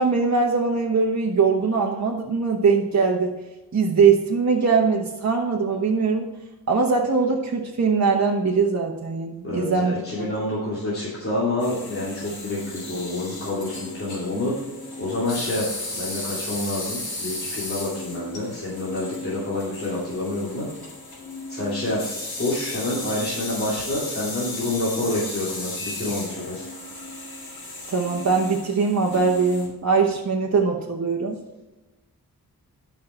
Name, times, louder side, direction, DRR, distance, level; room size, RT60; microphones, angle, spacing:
voice 1, 0.0-3.3 3.7-6.3 6.7-10.3 27.9-31.4, right 5 dB, 45° right, -2 dB, 1.1 m, -21 dB
voice 2, 9.4-14.5 15.0-20.7 21.5-22.0 22.4-26.7, left 1 dB, 35° left, -7 dB, 2.7 m, -28 dB
sound 1, 11.6-29.7, left 2 dB, 70° left, 3.1 m, -35 dB
11.0 x 5.7 x 4.4 m, 1.1 s
wide cardioid pair, 105°, 38 cm